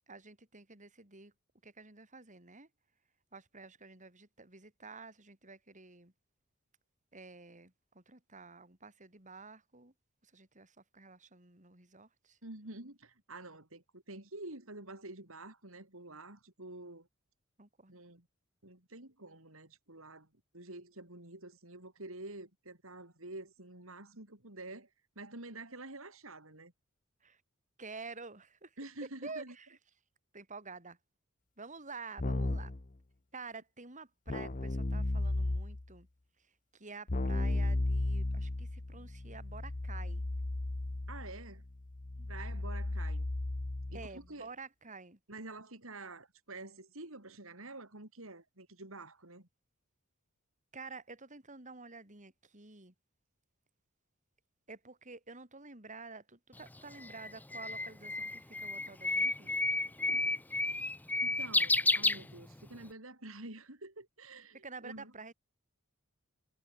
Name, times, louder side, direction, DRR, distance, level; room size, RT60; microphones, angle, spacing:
voice 1, 0.1-1.3 1.6-2.7 3.3-6.1 7.1-9.9 10.2-12.4 17.6-18.0 27.2-27.4 27.8-28.8 29.2-29.8 30.3-31.0 31.6-32.7 33.3-36.1 36.4-40.3 42.2-42.3 43.9-45.2 50.7-52.9 54.7-59.5 64.6-65.3, right 4 dB, 35° right, 5.4 m, -50 dB
voice 2, 12.4-17.1 17.9-18.3 18.6-20.3 20.5-24.9 25.2-26.7 28.8-29.5 41.1-41.6 42.3-43.3 43.9-44.5 45.3-49.5 61.2-65.1, right 2 dB, 70° right, 5.7 m, -48 dB
Keyboard (musical), 32.2-32.8 34.3-35.9 37.1-44.1, left 2 dB, 40° left, 0.9 m, -35 dB
Bird, 56.6-62.8, left 2 dB, 10° left, 0.6 m, -31 dB
head